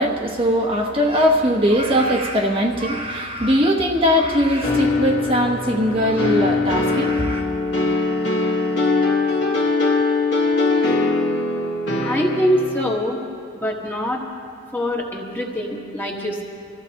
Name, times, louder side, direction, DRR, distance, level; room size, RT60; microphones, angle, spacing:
voice 1, 0.0-7.4, equal, 30° right, 0 dB, 1.1 m, -20 dB
sound 1, 4.6-12.9, left 3 dB, 60° left, 1.7 m, -21 dB
voice 2, 12.0-13.2 13.5-14.2 14.7-16.4, equal, 10° left, -1 dB, 1.5 m, -23 dB
24.5 x 14.5 x 2.9 m, 2.3 s
head